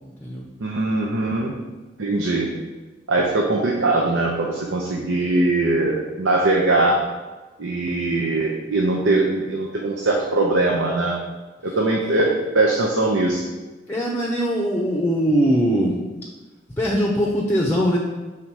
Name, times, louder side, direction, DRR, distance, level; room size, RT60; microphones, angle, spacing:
voice 1, 0.0-0.4 11.6-11.8 12.0-12.1 13.9-16.0 16.8-18.0, equal, 10° left, -1 dB, 0.6 m, -21 dB
voice 2, 0.6-1.5 2.0-2.5 3.1-7.0 7.6-11.2 11.6-13.4, right 2 dB, 90° right, -1 dB, 0.7 m, -21 dB
5.7 x 3.8 x 4.6 m, 1.2 s
head